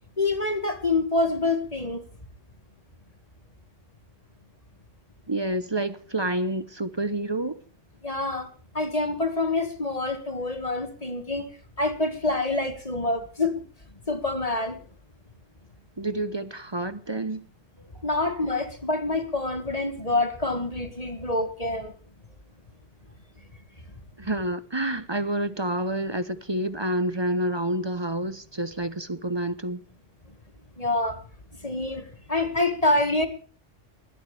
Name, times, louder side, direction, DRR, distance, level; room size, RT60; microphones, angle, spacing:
voice 1, 0.2-2.1 8.0-8.5 8.7-11.5 11.8-13.6 14.1-14.8 18.0-21.9 30.8-31.2 31.6-33.3, left 2 dB, 30° left, 2.0 m, -26 dB
voice 2, 5.3-7.6 16.0-17.5 24.2-29.8, right 1 dB, 25° right, 0.8 m, -28 dB
21.5 x 11.5 x 3.3 m
omnidirectional pair, 1.2 m